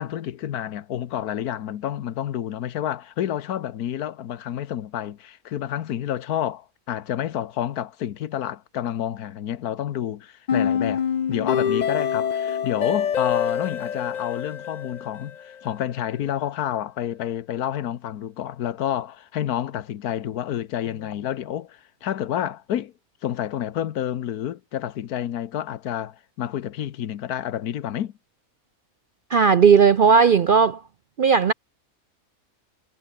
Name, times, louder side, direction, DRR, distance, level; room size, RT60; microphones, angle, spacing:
voice 1, 0.0-11.0 11.3-22.9 23.2-28.1, left 11 dB, 85° left, 1.4 m, -29 dB
sound 1, 10.5-15.5, left 8 dB, 55° left, 0.4 m, -25 dB
voice 2, 29.3-30.8 31.2-31.5, right 6 dB, 55° right, 0.5 m, -16 dB
omnidirectional pair, 1.6 m